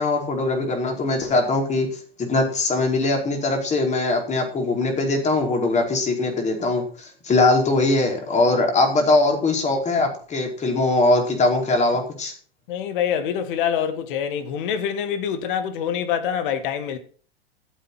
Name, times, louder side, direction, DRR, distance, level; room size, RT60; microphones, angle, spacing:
voice 1, 0.0-12.3, left 2 dB, 25° left, 4.8 m, -21 dB
voice 2, 12.7-17.0, left 8 dB, 60° left, 2.4 m, -25 dB
14.0 x 8.4 x 6.2 m
hypercardioid pair, 100°, 30 cm